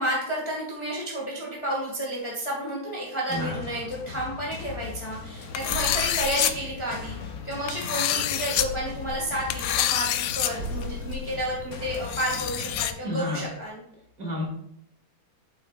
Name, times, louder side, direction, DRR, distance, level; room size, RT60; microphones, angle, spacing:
voice 1, 0.0-13.8, right 1 dB, 15° left, -4 dB, 1.7 m, -31 dB
sound 1, 3.3-12.9, left 5 dB, 55° left, 1.3 m, -39 dB
sound 2, 5.5-6.5 7.7-8.7 9.5-10.5 10.8-10.9 11.9-12.9, left 12 dB, 80° left, 1.3 m, -27 dB
sound 3, 5.7-8.0 8.6-13.2, left 1 dB, 80° right, 2.7 m, -39 dB
voice 2, 13.0-13.4 14.2-14.4, left 1 dB, 45° right, -3 dB, 2.8 m, -30 dB
8.6 x 7.8 x 2.5 m, 0.71 s
omnidirectional pair, 2.1 m